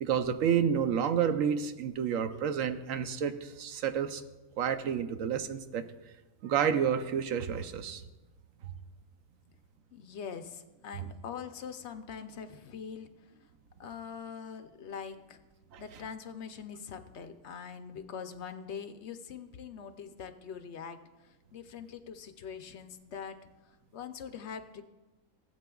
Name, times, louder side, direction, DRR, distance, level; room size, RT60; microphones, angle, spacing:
voice 1, 0.0-4.2 4.6-5.8 6.4-8.0 15.7-15.8, right 8 dB, 70° right, 9 dB, 1.0 m, -30 dB
voice 2, 9.9-13.3 13.8-15.4 15.8-24.8, left 7 dB, 60° left, 8 dB, 0.8 m, -43 dB
17.5 x 8.1 x 2.3 m, 1.1 s
omnidirectional pair, 1.5 m